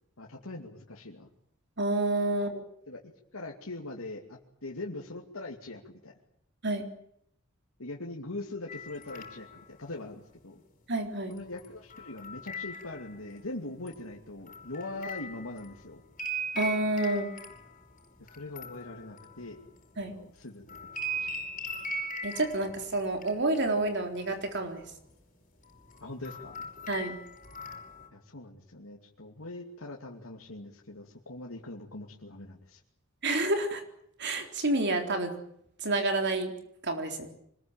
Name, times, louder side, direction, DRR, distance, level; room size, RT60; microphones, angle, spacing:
voice 1, 0.2-1.3 2.9-3.0 3.3-6.1 7.8-10.6 11.3-16.0 18.3-19.6 20.0-20.8 21.2-21.3 26.0-26.7 28.1-32.8, left 2 dB, 85° left, -1 dB, 2.7 m, -42 dB
voice 2, 1.8-2.6 6.6-6.9 10.9-11.3 16.6-17.3 20.0-20.1 22.2-24.8 26.9-27.1 33.2-33.8 34.2-35.3 35.8-36.5 36.8-37.3, right 2 dB, 55° right, 5 dB, 3.9 m, -29 dB
sound 1, 8.7-9.7 11.3-13.4 13.9-20.1 20.4-23.3 23.5-24.5 24.8-25.1 25.6-28.1, right 1 dB, 40° left, 5.8 m, -40 dB
25.5 x 21.0 x 9.0 m, 0.73 s
head